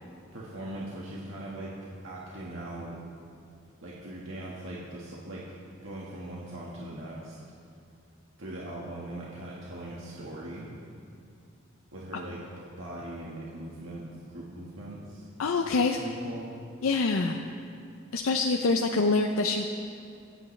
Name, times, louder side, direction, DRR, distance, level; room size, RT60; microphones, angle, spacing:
voice 1, 0.3-1.7 2.0-3.0 3.8-5.4 5.8-7.4 8.4-10.7 11.9-12.4 12.7-15.2 15.6-15.7 16.0-16.6, right 1 dB, 75° right, -6 dB, 1.6 m, -40 dB
voice 2, 15.4-16.0 16.8-17.4 18.1-19.6, left 3 dB, 90° left, 3 dB, 0.6 m, -25 dB
25.5 x 8.5 x 3.3 m, 2.4 s
head